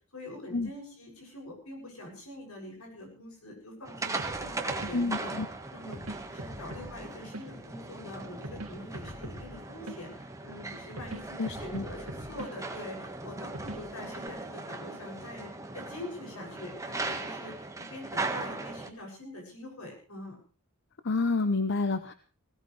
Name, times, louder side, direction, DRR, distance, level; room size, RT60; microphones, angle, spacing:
voice 1, 0.1-4.1 4.4-5.3 5.7-20.4, left 1 dB, 80° left, 1 dB, 7.3 m, -44 dB
sound 1, 3.8-18.9, right 3 dB, 15° right, 1.6 m, -39 dB
sound 2, 4.2-14.3, right 1 dB, 80° right, 2.9 m, -45 dB
voice 2, 4.9-5.5 11.4-11.9 21.0-22.1, left 3 dB, 55° left, 10 dB, 0.9 m, -29 dB
20.0 x 17.0 x 3.4 m, 0.37 s
head